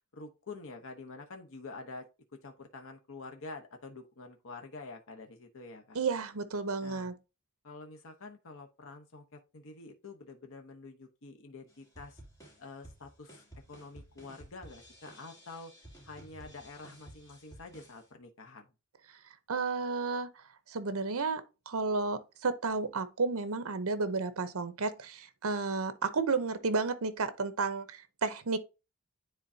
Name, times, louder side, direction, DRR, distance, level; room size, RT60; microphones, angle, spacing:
voice 1, 0.1-2.1 2.4-6.0 6.8-7.1 7.6-12.2 12.6-15.7 16.0-18.7, left 3 dB, 65° left, 1.0 m, -47 dB
voice 2, 5.9-7.1 19.5-20.3 20.7-28.6, right 4 dB, 65° right, 0.8 m, -32 dB
sound 1, 11.7-18.1, right 1 dB, 15° left, 2.8 m, -54 dB
9.8 x 3.9 x 2.7 m
head